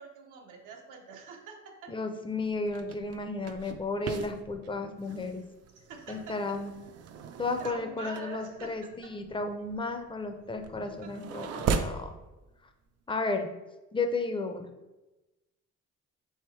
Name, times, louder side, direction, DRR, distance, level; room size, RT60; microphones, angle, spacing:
voice 1, 0.0-1.9 5.8-6.6 7.6-9.2 10.9-11.1, right 4 dB, 85° right, 2 dB, 0.8 m, -45 dB
voice 2, 1.9-5.4 6.1-6.7 7.4-12.1 13.1-13.5 13.9-14.7, left 3 dB, 15° left, 6 dB, 0.5 m, -33 dB
sound 1, 2.4-12.1, right 6 dB, 55° right, 0.4 m, -38 dB
3.4 x 3.0 x 4.4 m, 1.1 s
cardioid pair, 90°, 30 cm